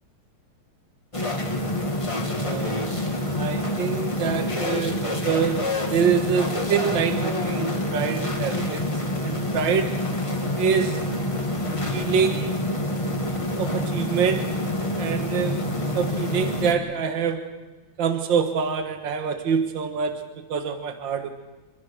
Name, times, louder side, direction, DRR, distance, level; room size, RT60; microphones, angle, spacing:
sound 1, 1.1-16.7, left 1 dB, 15° left, 2.1 m, -27 dB
voice 1, 2.3-8.9 9.2-10.0 10.6-11.2 11.9-12.7 13.5-14.5 14.9-15.6 15.9-17.5 18.0-21.3, right 7 dB, 65° right, 7 dB, 2.1 m, -26 dB
26.5 x 21.5 x 6.5 m, 1.2 s
omnidirectional pair, 2.3 m